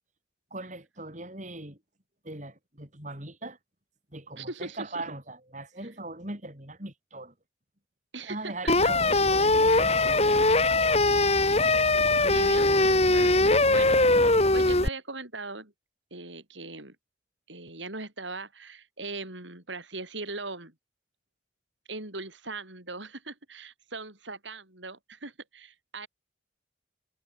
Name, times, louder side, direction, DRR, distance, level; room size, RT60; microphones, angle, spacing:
voice 1, 0.5-1.8 2.2-3.6 4.1-7.3 8.2-10.6, right 2 dB, 40° right, 7.7 m, -40 dB
voice 2, 4.4-4.9 8.1-8.7 11.5-15.7 16.1-17.0 17.5-20.7 21.9-26.1, right 3 dB, 80° right, 8.0 m, -40 dB
sound 1, 8.7-14.9, left 2 dB, 35° left, 3.6 m, -21 dB
head